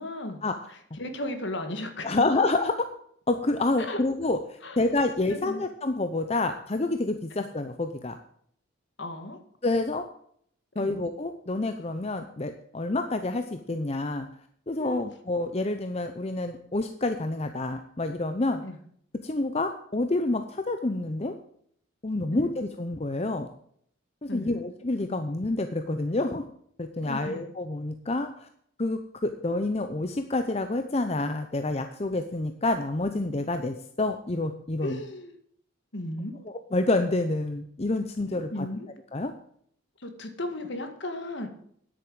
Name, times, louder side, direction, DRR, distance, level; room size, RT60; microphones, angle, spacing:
voice 1, 0.0-0.4 0.7-2.1 3.8-4.0 4.6-4.8 5.3-5.6 9.0-9.4 10.8-10.9 14.8-15.0 18.6-18.8 22.3-22.5 24.3-24.6 27.1-27.4 34.8-35.4 35.9-36.4 38.2-38.9 40.0-41.5, left 1 dB, 55° left, 7 dB, 1.9 m, -35 dB
voice 2, 2.0-2.7 3.3-8.2 9.6-10.1 10.8-14.3 14.7-18.6 19.2-21.3 22.0-23.5 24.2-26.5 26.8-28.5 28.8-35.0 36.7-38.7 39.1-39.3, left 2 dB, 30° left, 7 dB, 0.7 m, -28 dB
10.5 x 8.8 x 7.8 m, 0.65 s
head